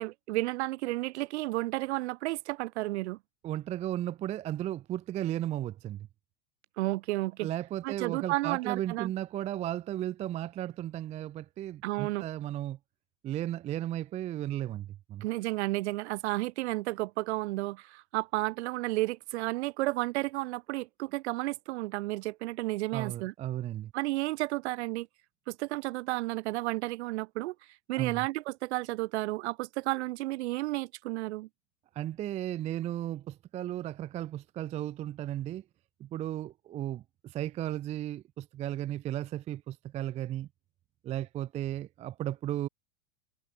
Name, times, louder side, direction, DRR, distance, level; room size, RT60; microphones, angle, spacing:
voice 1, 0.0-3.2 6.8-7.5 7.8-9.1 11.8-12.2 15.2-23.3 23.9-25.1 25.5-27.5 27.9-31.5, right 19 dB, 60° right, 2.9 m, -32 dB
voice 2, 3.4-6.1 7.4-12.8 13.2-15.3 22.9-23.9 28.0-28.3 32.0-35.6 36.0-40.5 41.0-42.7, right 12 dB, 20° right, 0.4 m, -35 dB
hypercardioid pair, 120°, 37 cm